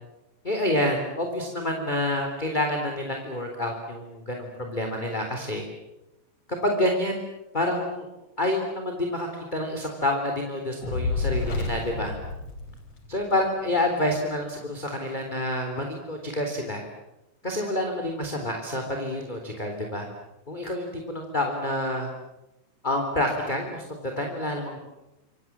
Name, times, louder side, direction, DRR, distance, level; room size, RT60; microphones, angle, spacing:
voice 1, 0.4-5.6 6.6-7.2 7.5-8.1 8.4-12.1 13.1-16.8 17.4-20.1 20.5-22.1 22.8-24.8, left 1 dB, 10° left, 2 dB, 2.9 m, -28 dB
Fire, 10.8-13.3, left 3 dB, 35° left, 3.7 m, -29 dB
27.5 x 27.0 x 7.6 m, 0.95 s
omnidirectional pair, 5.2 m